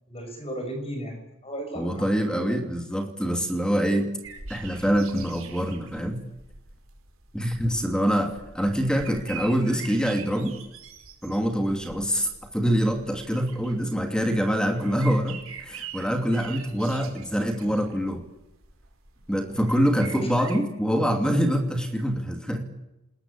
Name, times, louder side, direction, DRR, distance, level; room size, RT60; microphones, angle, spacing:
voice 1, 0.1-2.6 7.6-8.0 16.7-16.9 19.5-19.7, right 1 dB, 30° left, 5 dB, 6.5 m, -36 dB
voice 2, 1.8-4.1 4.5-6.2 7.3-10.6 11.2-18.2 19.3-22.7, equal, 5° left, 4 dB, 2.7 m, -25 dB
sound 1, 4.2-20.6, right 6 dB, 75° right, 4.8 m, -45 dB
27.5 x 20.5 x 8.7 m, 0.94 s
head